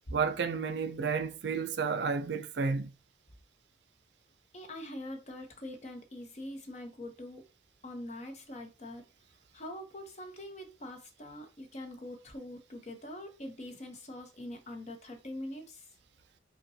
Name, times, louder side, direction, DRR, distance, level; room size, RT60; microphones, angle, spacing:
voice 1, 0.1-2.9, right 5 dB, 70° right, 0.4 m, -31 dB
voice 2, 4.5-7.4 7.8-9.0 9.5-15.8, left 1 dB, 40° left, 0.7 m, -43 dB
5.4 x 2.2 x 2.7 m
head